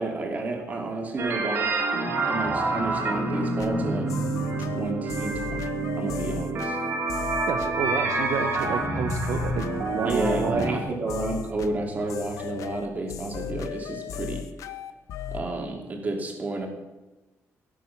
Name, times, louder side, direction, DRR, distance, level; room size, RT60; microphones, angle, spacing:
voice 1, 0.0-1.8 2.3-4.1 4.6-6.8 10.0-14.5 15.3-16.7, right 2 dB, 30° right, 2 dB, 2.6 m, -31 dB
sound 1, 1.2-10.8, right 3 dB, 50° right, 2.6 m, -28 dB
sound 2, 3.6-15.5, left 9 dB, 80° left, 0.9 m, -37 dB
voice 2, 7.5-10.9, right 6 dB, 70° right, 6 dB, 0.9 m, -29 dB
17.5 x 7.5 x 5.8 m, 1.1 s
cardioid pair, 155°, 5 cm